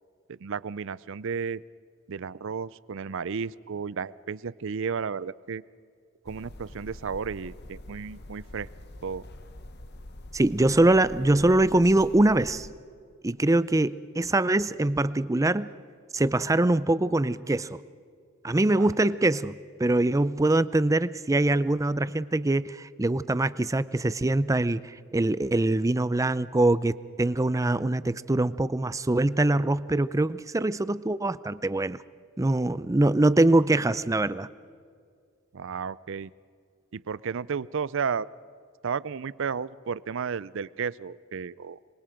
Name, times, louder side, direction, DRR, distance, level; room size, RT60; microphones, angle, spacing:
voice 1, 0.3-1.6 2.1-5.6 6.3-8.7 9.0-9.2 18.8-18.9 35.5-36.3 36.9-38.3 38.8-41.8, right 6 dB, 65° right, 20 dB, 0.5 m, -33 dB
sound 1, 6.2-12.7, left 1 dB, 50° left, 1.2 m, -45 dB
voice 2, 10.3-12.7 13.2-15.7 16.1-17.8 18.4-32.0 32.4-34.5, right 2 dB, 15° right, 16 dB, 0.5 m, -23 dB
26.0 x 23.0 x 5.1 m, 2.2 s
head